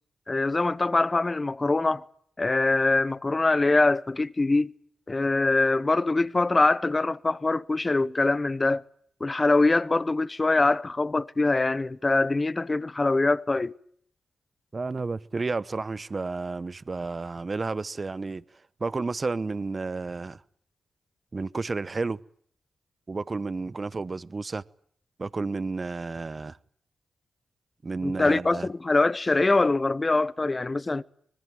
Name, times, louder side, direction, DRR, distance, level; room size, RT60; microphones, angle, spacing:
voice 1, 0.3-2.0 2.4-4.7 5.1-8.8 9.2-13.7 28.0-31.0, left 3 dB, 35° left, 1.0 m, -23 dB
voice 2, 14.7-18.4 18.8-20.4 21.3-22.2 23.1-24.6 25.2-26.6 27.8-28.7, right 3 dB, 40° right, 1.0 m, -31 dB
25.0 x 20.0 x 9.2 m
supercardioid pair, 45°, 0 cm